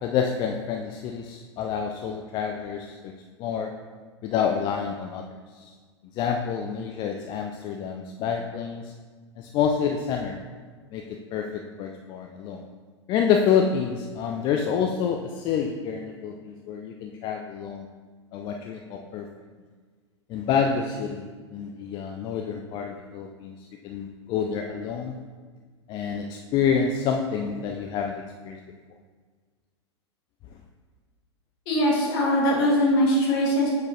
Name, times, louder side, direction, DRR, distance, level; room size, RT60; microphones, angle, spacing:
voice 1, 0.0-3.1 3.4-3.7 4.2-5.2 5.6-5.7 6.1-8.9 9.4-10.4 10.9-12.6 13.1-17.9 18.3-19.3 20.3-23.5 23.8-25.2 25.9-28.6, left 7 dB, 30° left, 3 dB, 0.4 m, -28 dB
voice 2, 31.7-33.7, equal, 50° left, -3 dB, 1.8 m, -21 dB
7.2 x 4.7 x 3.1 m, 1.5 s
figure-of-eight pair, 95°, 15 cm